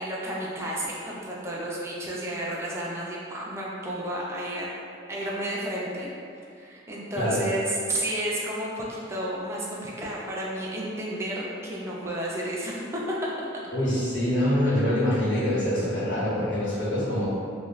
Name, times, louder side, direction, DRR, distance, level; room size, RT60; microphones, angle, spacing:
voice 1, 0.0-4.7 5.1-6.1 6.6-13.5 14.7-14.8, right 1 dB, 15° right, -5 dB, 0.3 m, -32 dB
voice 2, 13.7-17.3, left 1 dB, 75° left, -10 dB, 1.0 m, -25 dB
2.3 x 2.2 x 3.1 m, 2.4 s
head